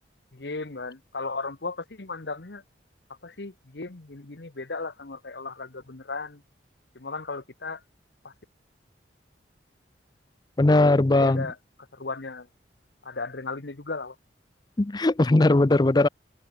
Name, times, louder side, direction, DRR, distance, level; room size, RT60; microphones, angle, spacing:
voice 1, 0.3-2.6 3.2-6.4 6.9-7.8 8.2-8.3 11.2-11.6 11.9-12.5 13.0-14.2, left 3 dB, 65° left, 1.2 m, -35 dB
voice 2, 10.6-11.5 14.8-16.1, left 2 dB, 20° left, 0.5 m, -19 dB
head